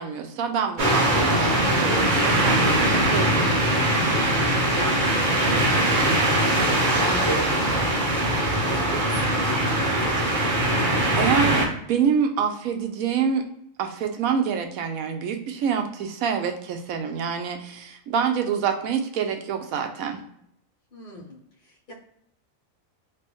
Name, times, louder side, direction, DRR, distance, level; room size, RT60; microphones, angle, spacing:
voice 1, 0.0-3.6 11.1-13.4 13.8-20.2, right 7 dB, 90° right, 5 dB, 1.1 m, -26 dB
sound 1, 0.8-11.7, right 1 dB, 40° right, 1.0 m, -21 dB
voice 2, 4.0-5.3 5.9-9.8 20.9-21.9, right 1 dB, 45° left, -3 dB, 1.3 m, -37 dB
3.3 x 2.9 x 3.0 m, 0.72 s
omnidirectional pair, 1.4 m